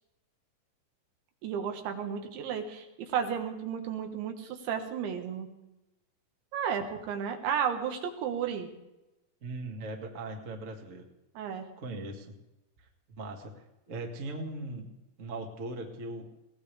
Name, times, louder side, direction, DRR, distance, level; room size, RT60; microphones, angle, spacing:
voice 1, 1.4-5.5 6.5-8.7 11.4-11.7, right 7 dB, 90° right, 5 dB, 3.9 m, -33 dB
voice 2, 9.4-11.0 11.8-12.3 13.2-14.9 15.2-16.3, right 2 dB, 55° right, 2 dB, 0.8 m, -39 dB
20.5 x 18.0 x 3.4 m, 0.97 s
omnidirectional pair, 5.1 m